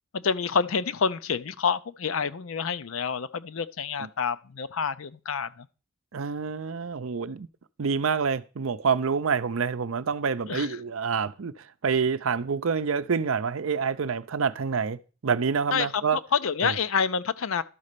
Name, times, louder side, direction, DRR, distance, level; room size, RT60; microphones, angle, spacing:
voice 1, 0.1-5.7 10.5-10.7 15.7-17.6, left 6 dB, 70° left, 0.5 m, -28 dB
voice 2, 6.1-7.5 7.8-11.5 11.8-16.2 16.6-16.7, right 5 dB, 75° right, 0.6 m, -27 dB
12.0 x 4.2 x 6.7 m
head